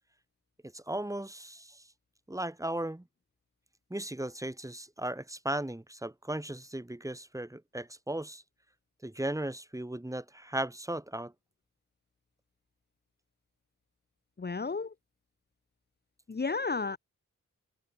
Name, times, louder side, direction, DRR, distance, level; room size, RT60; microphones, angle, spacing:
voice 1, 0.7-1.9 2.3-3.0 3.9-8.4 9.0-11.3, right 1 dB, 10° right, 5.6 m, -36 dB
voice 2, 14.4-14.9 16.3-17.0, left 4 dB, 30° left, 1.7 m, -32 dB
wide cardioid pair, 105°, 32 cm